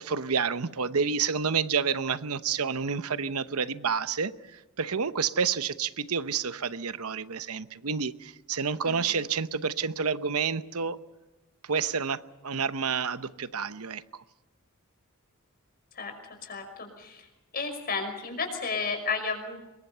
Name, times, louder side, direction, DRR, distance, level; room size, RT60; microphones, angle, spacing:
voice 1, 0.0-11.0 11.6-14.2, right 6 dB, 85° right, 0.9 m, -29 dB
voice 2, 8.8-9.2 16.0-17.3 17.5-19.6, left 4 dB, 45° left, 5.6 m, -33 dB
26.5 x 22.5 x 5.7 m
head